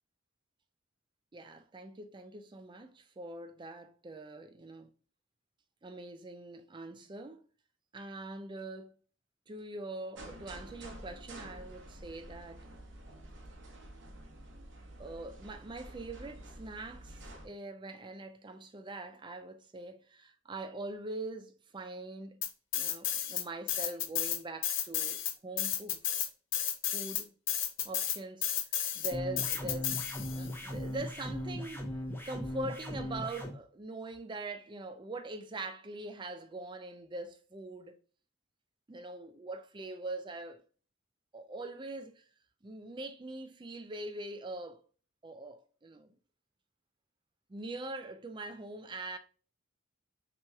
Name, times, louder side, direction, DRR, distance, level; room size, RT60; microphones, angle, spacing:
voice 1, 1.3-4.9 5.8-7.4 7.9-9.0 9.5-12.7 15.0-22.4 22.7-26.0 26.9-27.3 27.8-28.5 28.7-30.0 30.3-32.0 32.2-38.0 38.9-40.6 41.3-42.2 42.6-44.8 45.2-46.1 47.5-49.2, right 2 dB, 25° right, 0.4 m, -43 dB
sound 1, 10.2-17.5, right 1 dB, 60° right, 1.0 m, -49 dB
sound 2, 22.4-23.4 23.7-30.5, left 10 dB, 65° left, 0.6 m, -33 dB
sound 3, 29.1-33.5, equal, 10° left, 0.8 m, -38 dB
5.9 x 3.0 x 2.3 m
head